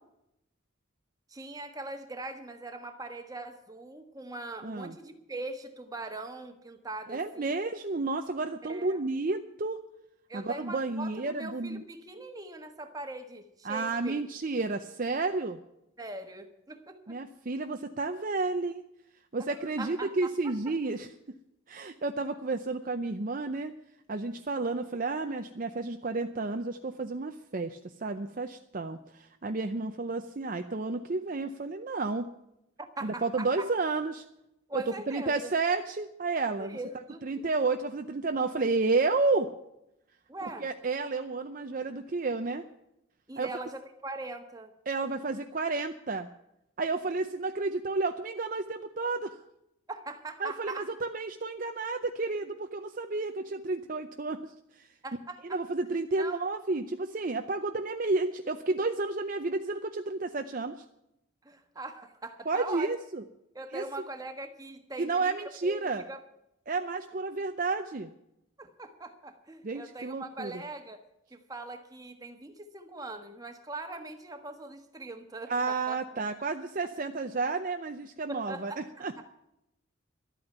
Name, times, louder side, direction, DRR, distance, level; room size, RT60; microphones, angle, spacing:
voice 1, 1.3-7.5 8.7-9.0 10.3-14.2 16.0-17.2 19.4-20.7 33.0-33.7 34.7-35.5 36.7-37.3 40.3-40.7 43.3-44.7 49.9-50.8 55.0-55.6 56.2-56.4 61.4-62.9 63.5-66.2 68.6-76.0 78.3-79.2, right 2 dB, 20° right, 6 dB, 1.4 m, -41 dB
voice 2, 4.6-4.9 7.1-9.8 10.3-11.8 13.6-15.6 17.1-18.8 19.3-21.1 21.7-23.7 24.1-32.3 33.0-34.2 34.7-36.8 37.2-39.5 40.4-42.6 43.4-43.5 44.9-46.3 46.8-49.4 50.4-54.9 55.4-60.8 62.5-63.2 63.7-63.8 65.0-66.0 66.7-68.1 69.6-70.5 75.5-79.2, right 3 dB, 40° right, 7 dB, 0.6 m, -31 dB
12.5 x 8.8 x 9.2 m, 0.83 s
head